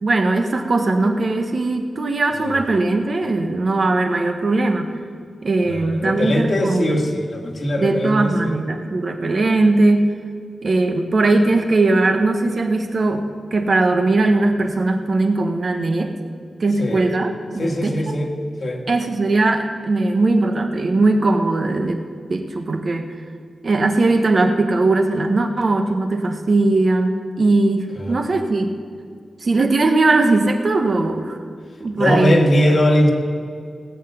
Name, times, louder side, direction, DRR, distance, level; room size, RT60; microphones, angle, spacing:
voice 1, 0.0-5.0 5.4-7.0 7.8-10.1 10.6-13.2 13.5-16.1 16.6-18.2 18.9-22.0 22.3-23.1 23.6-28.7 29.4-31.4 31.8-32.5, right 2 dB, 45° right, 5 dB, 1.0 m, -19 dB
voice 2, 5.7-8.5 16.8-17.0 17.6-18.3 18.6-18.8 27.9-28.3 31.9-33.1, equal, 45° left, 2 dB, 1.7 m, -20 dB
17.5 x 5.8 x 8.1 m, 2.1 s
wide cardioid pair, 125°, 0 cm